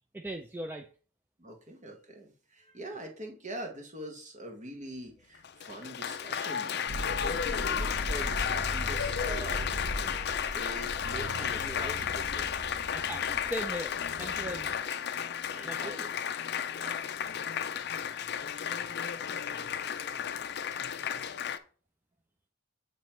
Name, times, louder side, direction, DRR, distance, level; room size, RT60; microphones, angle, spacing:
voice 1, 0.1-0.9 11.4-11.8 12.9-14.8 15.6-16.0, equal, 10° right, 3 dB, 0.4 m, -39 dB
voice 2, 1.4-12.6 15.5-16.1 16.8-17.1 18.1-18.3, right 1 dB, 35° right, 2 dB, 1.3 m, -44 dB
Applause, 5.4-21.6, left 8 dB, 55° left, 0.5 m, -33 dB
sound 1, 6.9-14.8, equal, 85° right, 1.4 m, -39 dB
9.0 x 3.1 x 4.4 m, 0.39 s
head